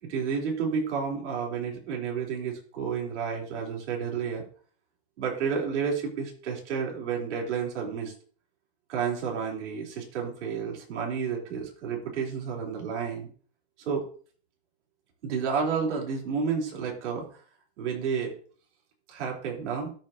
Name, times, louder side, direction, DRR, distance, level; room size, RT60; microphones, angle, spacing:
voice 1, 0.0-4.4 5.2-8.1 8.9-13.3 13.8-14.0 15.2-17.4 17.8-18.4 19.1-19.9, right 6 dB, 85° right, -1 dB, 3.8 m, -31 dB
13.0 x 6.6 x 2.8 m, 0.44 s
supercardioid pair, 155°, 34 cm